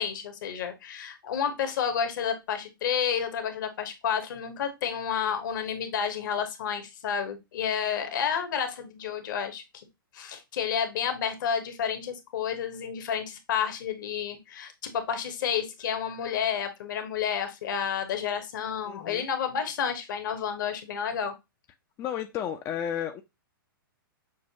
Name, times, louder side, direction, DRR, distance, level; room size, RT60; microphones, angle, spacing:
voice 1, 0.0-9.6 10.1-21.3, left 7 dB, 60° left, 1.0 m, -30 dB
voice 2, 18.9-19.3 22.0-23.2, left 9 dB, 25° left, 0.4 m, -32 dB
6.3 x 2.2 x 2.7 m
hypercardioid pair, 120°, 12 cm